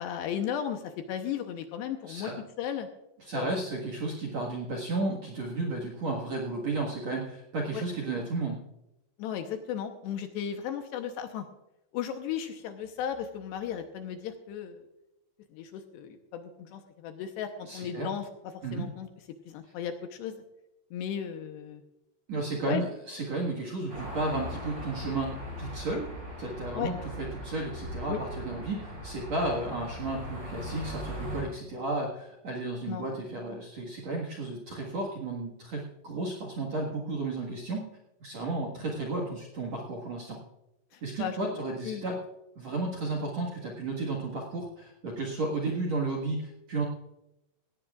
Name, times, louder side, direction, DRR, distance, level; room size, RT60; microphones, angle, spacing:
voice 1, 0.0-2.3 2.6-2.9 3.3-3.5 7.7-7.8 9.2-11.5 11.9-14.8 15.5-18.2 18.7-19.1 19.5-20.3 20.9-21.8 22.6-22.8 26.7-26.9 28.1-28.2 32.9-33.0 40.9-41.4 41.9-42.1, left 9 dB, 75° left, 6 dB, 2.8 m, -35 dB
voice 2, 2.1-2.4 3.2-8.6 17.6-18.1 18.6-18.9 22.3-26.1 26.4-37.8 38.2-40.4 41.0-42.2 42.6-46.8, right 2 dB, 55° right, 0 dB, 2.0 m, -33 dB
sound 1, 23.9-31.4, equal, 25° right, 6.8 m, -39 dB
18.0 x 16.5 x 2.5 m, 0.90 s
omnidirectional pair, 5.4 m